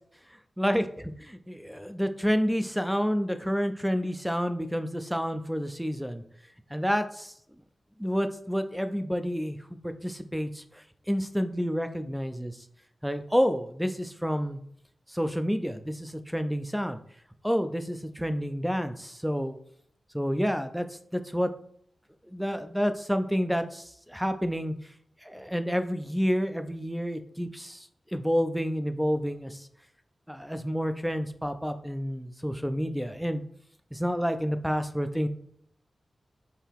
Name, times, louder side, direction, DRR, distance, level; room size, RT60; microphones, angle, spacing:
voice 1, 1.3-6.2 6.7-7.3 8.0-9.6 9.8-12.6 13.0-14.6 15.1-17.0 17.4-19.6 20.1-20.9 21.1-21.5 22.3-24.7 25.2-29.7 30.3-33.4 33.9-35.3, equal, ahead, 9 dB, 0.4 m, -29 dB
4.6 x 3.3 x 3.5 m, 0.67 s
wide cardioid pair, 120°, 0 cm